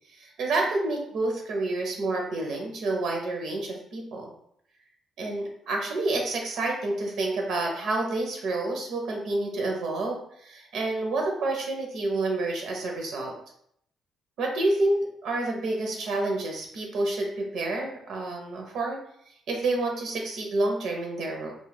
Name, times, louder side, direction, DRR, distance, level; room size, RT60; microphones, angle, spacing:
voice 1, 0.1-4.3 5.2-13.3 14.4-19.0 19.5-21.6, right 2 dB, 75° right, 1 dB, 0.6 m, -29 dB
2.3 x 2.1 x 3.3 m, 0.71 s
cardioid pair, 90°, 0 cm